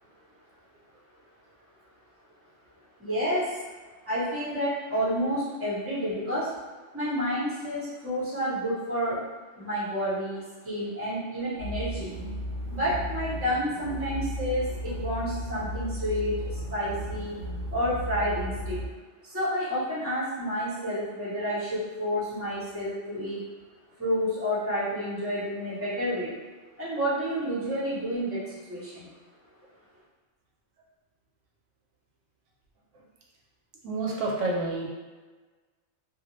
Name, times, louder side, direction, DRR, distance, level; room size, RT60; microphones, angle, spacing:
voice 1, 3.0-3.6 4.1-6.5 6.9-9.2 9.6-12.1 12.7-17.4 17.7-18.8 19.3-23.4 24.0-26.3 26.8-29.1, equal, 15° right, -9 dB, 0.7 m, -30 dB
sound 1, 11.6-18.9, equal, 55° right, 0.8 m, -35 dB
voice 2, 33.8-34.9, right 2 dB, 85° right, -2 dB, 0.9 m, -28 dB
2.3 x 2.0 x 2.9 m, 1.3 s
omnidirectional pair, 1.2 m